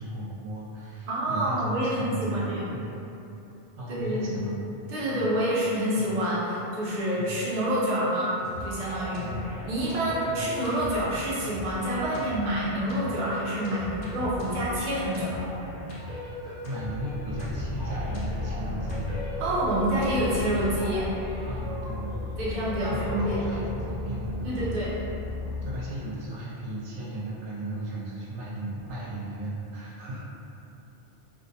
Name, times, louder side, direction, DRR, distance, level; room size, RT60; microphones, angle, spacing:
voice 1, 0.0-2.9 3.8-4.6 5.1-5.3 5.9-6.2 7.2-7.3 9.2-9.5 10.3-10.5 16.6-19.1 21.5-22.1 22.9-24.8 25.6-30.3, right 1 dB, 85° right, -6 dB, 0.9 m, -35 dB
voice 2, 1.1-2.7 3.9-4.4 4.9-9.3 9.7-15.4 19.4-21.1 22.4-23.5 24.4-24.9 25.4-25.5, right 1 dB, 50° right, -8 dB, 0.7 m, -28 dB
sound 1, 8.4-21.1, equal, 55° left, 0.7 m, -38 dB
Boat Water vehicle, 17.1-25.9, left 2 dB, 15° left, 0.4 m, -34 dB
2.6 x 2.0 x 2.6 m, 2.8 s
omnidirectional pair, 1.2 m